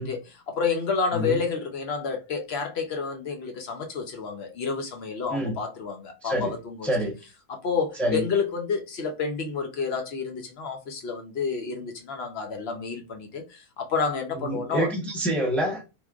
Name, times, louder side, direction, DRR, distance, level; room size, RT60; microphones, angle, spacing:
voice 1, 0.0-6.9 7.5-14.9, left 5 dB, 55° left, 0.8 m, -30 dB
voice 2, 6.2-6.5 6.8-7.1 8.0-8.2 14.4-15.8, right 1 dB, ahead, 0.3 m, -26 dB
3.5 x 3.0 x 2.3 m
omnidirectional pair, 1.6 m